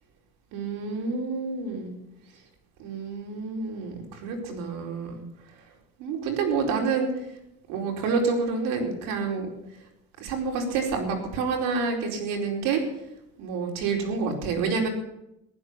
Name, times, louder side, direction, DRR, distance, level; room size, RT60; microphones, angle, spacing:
voice 1, 0.5-1.9 2.8-5.2 6.0-7.1 7.7-9.5 10.2-12.8 13.4-14.9, right 4 dB, 90° right, 1 dB, 4.6 m, -28 dB
15.5 x 12.5 x 7.5 m, 0.83 s
cardioid pair, 155°, 32 cm